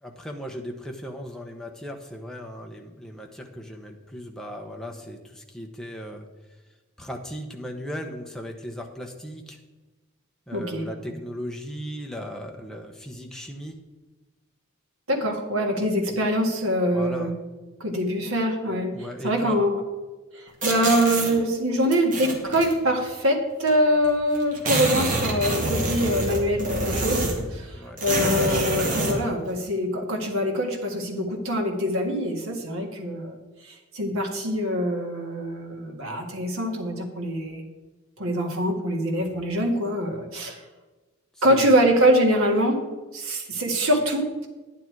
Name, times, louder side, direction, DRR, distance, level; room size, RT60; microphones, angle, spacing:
voice 1, 0.0-6.3 7.0-9.6 10.5-13.8 16.9-17.3 18.9-19.6 27.7-28.0 41.3-41.8, equal, ahead, 2 dB, 0.9 m, -37 dB
voice 2, 10.5-10.9 15.1-17.3 17.8-18.9 19.2-19.8 20.3-33.3 33.6-37.6 38.2-40.6 41.4-42.8 43.1-44.5, equal, 75° right, 1 dB, 1.9 m, -24 dB
sound 1, 20.6-21.3 21.9-22.7 23.7-23.8 24.0-24.1 24.3-27.5 28.0-29.2, right 2 dB, 35° right, 1.8 m, -26 dB
10.5 x 9.9 x 4.7 m, 1.2 s
head